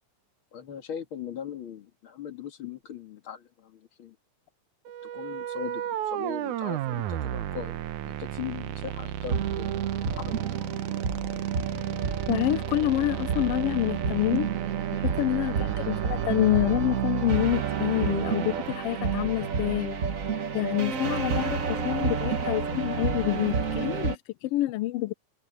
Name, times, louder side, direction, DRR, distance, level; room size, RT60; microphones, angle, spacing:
voice 1, 0.5-4.2 5.1-7.8 8.0-10.7, left 8 dB, 45° left, 2.5 m, -40 dB
sound 1, 4.9-18.7, right 12 dB, 85° right, 2.4 m, -33 dB
sound 2, 9.3-24.1, right 6 dB, 55° right, 0.9 m, -30 dB
voice 2, 12.3-14.5 14.9-20.0 20.5-25.1, left 16 dB, 85° left, 1.3 m, -27 dB
omnidirectional pair, 3.4 m